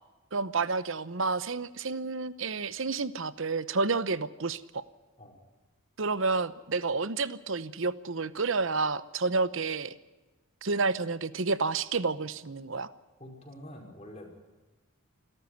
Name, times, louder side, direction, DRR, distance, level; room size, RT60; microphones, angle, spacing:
voice 1, 0.3-4.8 6.0-9.9 10.6-12.9, right 4 dB, 65° right, 16 dB, 0.9 m, -30 dB
voice 2, 13.2-14.3, left 1 dB, 30° left, 1 dB, 5.1 m, -46 dB
27.0 x 12.5 x 8.0 m, 1.2 s
head